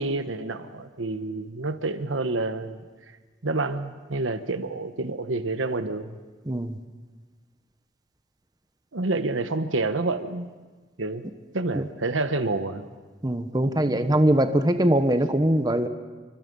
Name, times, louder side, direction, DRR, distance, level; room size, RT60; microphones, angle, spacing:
voice 1, 0.0-2.8 3.4-6.2 8.9-10.5 11.0-11.3 11.5-12.8 13.6-14.2, right 2 dB, 85° right, 10 dB, 1.2 m, -28 dB
voice 2, 6.5-6.8 11.7-11.9 13.2-15.9, right 1 dB, 20° right, 8 dB, 1.0 m, -22 dB
28.0 x 24.5 x 5.4 m, 1.3 s
head